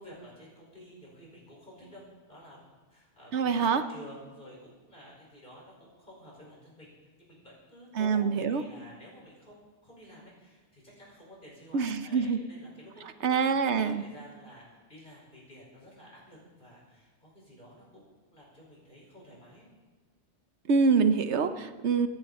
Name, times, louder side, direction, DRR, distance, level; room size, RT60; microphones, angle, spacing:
voice 1, 0.0-2.6 2.9-6.9 7.2-9.6 9.8-19.7, equal, 50° left, -4 dB, 5.4 m, -51 dB
voice 2, 3.3-3.8 7.9-8.6 11.7-12.4 13.2-14.0 20.7-22.1, right 5 dB, 80° right, 10 dB, 1.1 m, -25 dB
25.0 x 10.5 x 4.3 m, 1.3 s
omnidirectional pair, 1.1 m